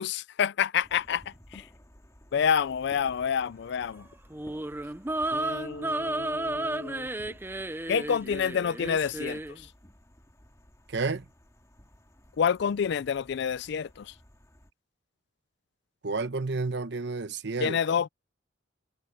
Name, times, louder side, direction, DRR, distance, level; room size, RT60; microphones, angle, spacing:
voice 1, 0.0-1.7 2.3-4.1 5.3-7.1 7.9-9.7 12.4-14.1 17.6-18.1, left 7 dB, 65° left, 0.4 m, -28 dB
sound 1, 0.8-14.7, equal, 15° left, 2.4 m, -56 dB
sound 2, 4.3-9.6, right 2 dB, 10° right, 0.5 m, -33 dB
voice 2, 10.9-11.2 16.0-17.8, right 3 dB, 65° right, 1.0 m, -30 dB
head